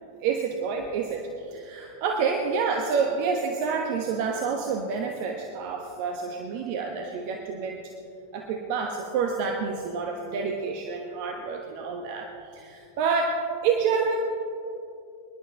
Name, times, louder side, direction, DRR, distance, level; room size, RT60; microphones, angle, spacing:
voice 1, 0.2-7.8 8.3-14.2, right 5 dB, 45° right, 2 dB, 1.1 m, -28 dB
24.5 x 11.5 x 3.3 m, 2.8 s
figure-of-eight pair, 90°, 0 cm